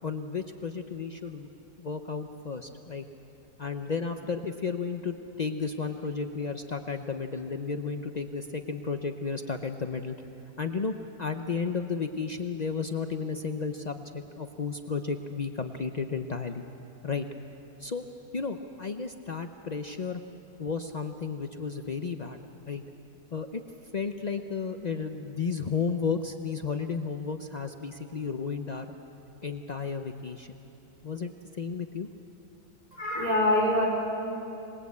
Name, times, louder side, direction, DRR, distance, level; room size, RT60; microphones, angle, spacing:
voice 1, 0.0-1.5 1.8-3.0 3.6-10.2 10.6-16.6 17.0-17.3 17.8-18.0 18.3-20.2 20.6-22.4 22.7-22.8 23.3-23.6 23.9-28.9 29.4-30.6 31.0-32.1, left 5 dB, 70° left, 6 dB, 0.4 m, -33 dB
voice 2, 32.9-33.9, left 1 dB, 20° right, -2 dB, 4.5 m, -24 dB
27.0 x 20.0 x 8.4 m, 3.0 s
omnidirectional pair, 1.9 m